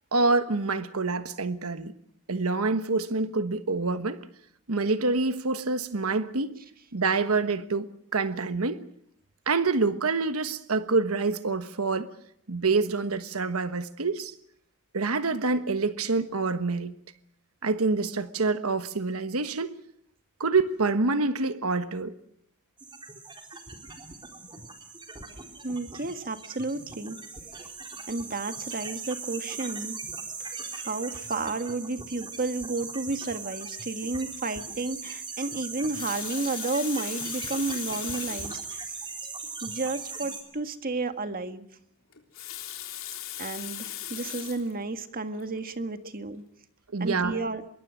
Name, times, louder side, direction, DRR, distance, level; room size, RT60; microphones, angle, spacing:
voice 1, 0.1-1.9 2.3-4.2 4.7-6.6 6.9-8.8 9.5-12.1 12.5-14.3 14.9-17.0 17.6-19.8 20.4-22.1 46.9-47.4, right 3 dB, 75° right, 1.3 m, -26 dB
sound 1, 22.8-40.4, right 4 dB, 20° right, 3.9 m, -39 dB
voice 2, 25.6-27.2 28.1-30.0 30.4-39.0 39.6-41.7 43.4-46.4 47.0-47.6, right 3 dB, 40° right, 1.7 m, -32 dB
Water tap faucet, 35.7-38.6 39.4-39.5 39.8-39.9 42.1-44.7 45.4-45.6, left 12 dB, 65° left, 3.6 m, -38 dB
25.5 x 22.5 x 6.3 m
head